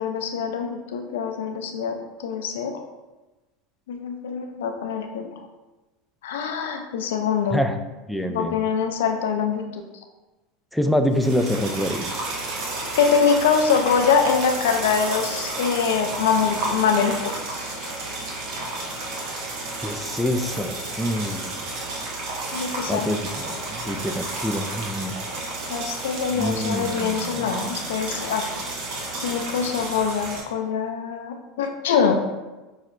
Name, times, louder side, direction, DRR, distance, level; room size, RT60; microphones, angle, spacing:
voice 1, 0.0-2.7 3.9-5.3 6.2-7.6 8.3-9.8 13.0-17.8 22.5-23.1 25.7-28.4 29.2-32.2, left 6 dB, 80° left, 4 dB, 0.4 m, -24 dB
voice 2, 8.1-8.6 10.7-12.1 19.8-21.6 22.9-23.3 23.7-25.2 26.4-27.5, equal, ahead, 6 dB, 0.3 m, -26 dB
sound 1, 11.1-30.4, right 2 dB, 60° right, 0.8 m, -32 dB
5.6 x 2.1 x 2.5 m, 1.1 s
hypercardioid pair, 95°, 0 cm